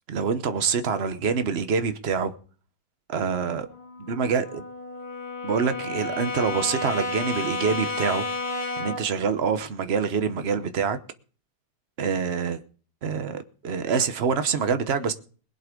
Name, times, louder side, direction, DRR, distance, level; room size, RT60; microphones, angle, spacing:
voice 1, 0.1-2.3 3.1-3.7 4.1-4.6 5.4-8.2 8.8-11.0 12.0-12.6 13.0-15.1, right 6 dB, 50° right, 0.7 m, -26 dB
Brass instrument, 3.6-9.1, left 2 dB, 30° left, 2.4 m, -32 dB
21.5 x 8.0 x 5.2 m
omnidirectional pair, 2.3 m